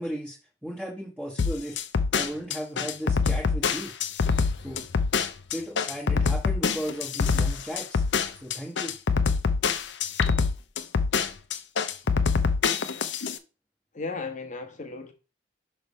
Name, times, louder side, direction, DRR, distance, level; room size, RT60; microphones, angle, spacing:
voice 1, 0.0-1.8 2.1-3.9 4.6-4.8 5.5-8.0 8.4-8.9, equal, 5° right, 1.1 m, -35 dB
sound 1, 1.4-13.4, left 5 dB, 75° left, 0.6 m, -25 dB
voice 2, 13.9-15.1, left 4 dB, 40° left, 1.1 m, -35 dB
5.9 x 3.3 x 5.4 m
head